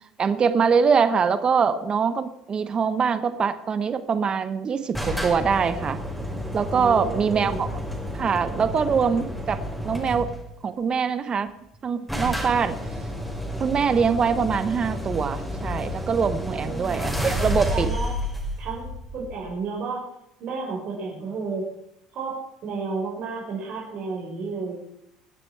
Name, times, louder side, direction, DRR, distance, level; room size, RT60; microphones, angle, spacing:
voice 1, 0.2-6.0 6.5-7.7 8.1-9.6 9.8-10.3 10.6-11.5 11.8-12.8 13.6-17.9, right 6 dB, 40° right, 11 dB, 1.2 m, -23 dB
sound 1, 4.9-10.5 11.5-11.6 11.7-11.8 12.1-19.6, equal, ahead, 5.0 m, -31 dB
voice 2, 6.7-7.7 16.3-16.9 17.7-18.1 18.6-18.9 19.1-20.0 20.4-21.7 22.1-24.7, right 4 dB, 55° right, -3 dB, 5.0 m, -32 dB
22.0 x 9.0 x 4.9 m, 0.78 s
hypercardioid pair, 75°, 2 cm